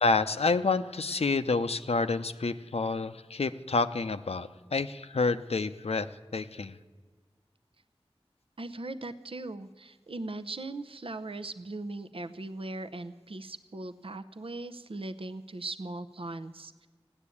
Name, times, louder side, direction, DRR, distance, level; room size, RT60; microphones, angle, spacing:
voice 1, 0.0-6.1 6.3-6.8, left 3 dB, 85° left, 9 dB, 0.6 m, -28 dB
voice 2, 8.6-16.9, right 2 dB, 65° right, 10 dB, 0.7 m, -39 dB
15.0 x 9.8 x 8.4 m, 1.5 s
wide cardioid pair, 50°, 10 cm